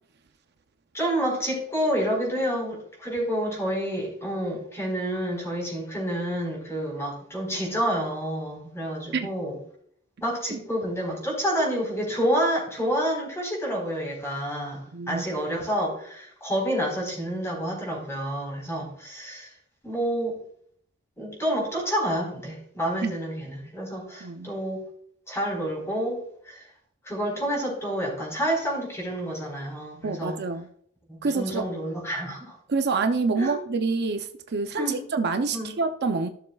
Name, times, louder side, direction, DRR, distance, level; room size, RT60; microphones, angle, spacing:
voice 1, 0.9-9.6 10.2-19.5 19.8-20.4 21.2-24.8 25.3-26.7 27.0-30.4 31.1-32.5 33.4-33.5 34.8-35.0 35.5-35.7, equal, 15° left, 4.4 m, -29 dB
voice 2, 14.9-15.2 23.0-23.1 24.2-24.5 30.0-30.7 31.2-31.7 32.7-36.3, right 4 dB, 50° right, 0.6 m, -27 dB
16.0 x 6.9 x 2.3 m
head